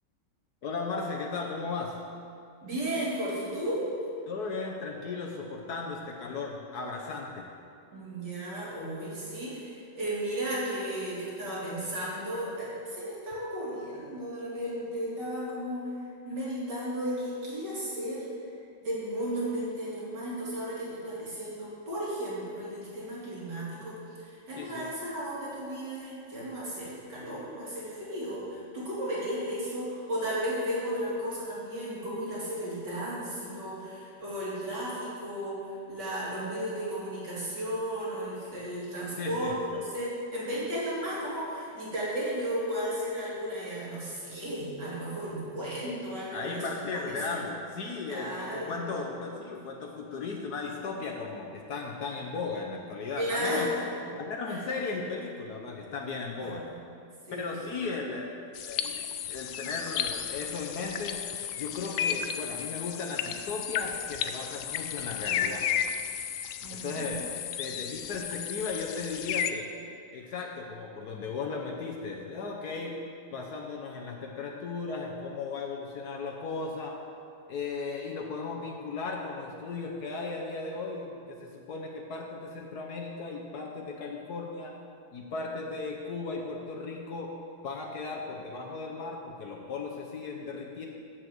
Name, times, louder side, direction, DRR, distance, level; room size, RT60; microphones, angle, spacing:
voice 1, 0.6-2.0 4.3-7.5 24.5-24.9 39.2-39.6 46.3-53.7 54.2-56.7 57.4-59.0 59.3-61.2 61.6-65.7 66.7-67.3 67.6-69.7 70.1-73.0 73.3-77.0 77.5-84.7 85.1-87.3 87.6-90.9, left 4 dB, 65° left, 0 dB, 1.4 m, -36 dB
voice 2, 2.6-3.8 7.9-15.9 16.2-18.3 18.8-46.7 46.9-47.4 48.1-48.8 53.2-53.9 54.5-54.6 56.4-56.6 57.3-57.7 66.6-67.2, equal, 70° right, -7 dB, 3.6 m, -34 dB
sound 1, 58.5-69.5, left 9 dB, 80° left, 0.7 m, -33 dB
8.0 x 7.4 x 7.9 m, 2.4 s
omnidirectional pair, 1.9 m